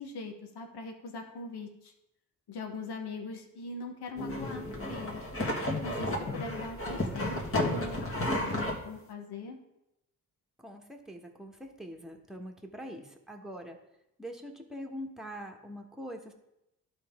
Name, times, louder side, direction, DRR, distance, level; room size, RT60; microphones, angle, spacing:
voice 1, 0.0-1.9 2.5-5.3 5.8-9.6, left 3 dB, 80° left, 3 dB, 1.2 m, -41 dB
sound 1, 4.2-8.8, left 1 dB, 35° left, 1.7 m, -32 dB
voice 2, 5.7-6.4 10.6-13.8 14.2-16.3, equal, ahead, 2 dB, 1.3 m, -44 dB
12.0 x 4.3 x 3.6 m, 0.88 s
cardioid pair, 65°, 39 cm